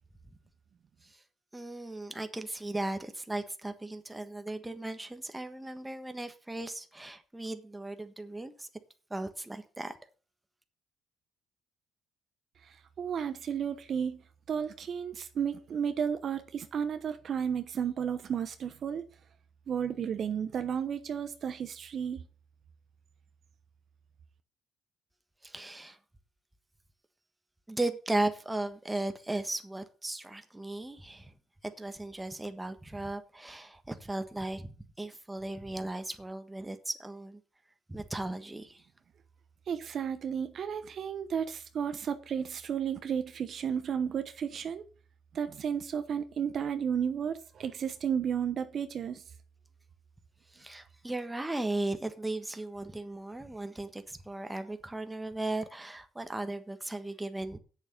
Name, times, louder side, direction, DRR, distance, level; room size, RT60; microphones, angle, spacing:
voice 1, 1.5-8.7 9.1-10.0 25.4-26.0 27.7-31.3 31.6-37.4 37.9-38.8 50.5-57.6, right 2 dB, 10° right, 1.4 m, -36 dB
voice 2, 12.6-14.2 14.5-19.0 19.7-22.3 39.7-44.8 45.3-49.2, right 7 dB, 50° right, 1.0 m, -33 dB
8.3 x 7.1 x 6.6 m
cardioid pair, 100°, 0 cm